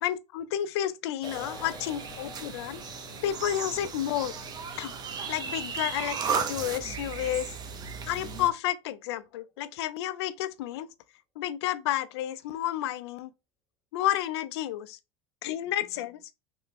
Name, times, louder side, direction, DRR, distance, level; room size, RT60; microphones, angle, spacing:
voice 1, 0.0-2.8 3.2-4.3 4.8-4.9 5.3-7.5 8.1-10.9 11.4-13.3 13.9-15.0 15.4-16.2, left 12 dB, 90° left, 0.4 m, -31 dB
sound 1, 1.2-7.9 8.2-8.3, left 3 dB, 20° left, 0.8 m, -50 dB
sound 2, 1.2-8.5, right 6 dB, 30° right, 0.5 m, -35 dB
sound 3, 1.3-7.0, left 2 dB, 80° right, 0.9 m, -50 dB
3.3 x 2.1 x 3.3 m
supercardioid pair, 120°, 13 cm